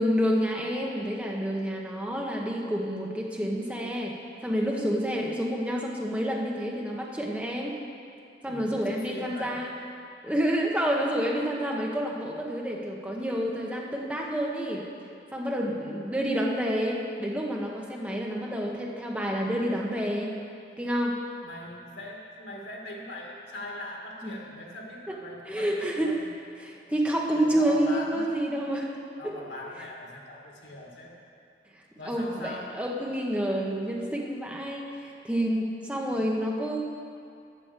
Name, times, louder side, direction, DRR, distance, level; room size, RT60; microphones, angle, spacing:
voice 1, 0.0-4.1 4.4-7.7 8.4-9.7 10.2-14.8 15.3-20.3 20.8-21.2 24.2-24.3 25.1-25.2 25.5-26.1 26.6-28.9 29.2-29.3 32.0-36.8, equal, 10° right, -2 dB, 1.0 m, -28 dB
voice 2, 8.5-9.7 21.4-26.4 27.4-28.2 29.2-31.1 32.0-32.8 36.1-36.2, left 1 dB, 90° left, -1 dB, 1.8 m, -41 dB
8.7 x 6.1 x 8.1 m, 2.5 s
head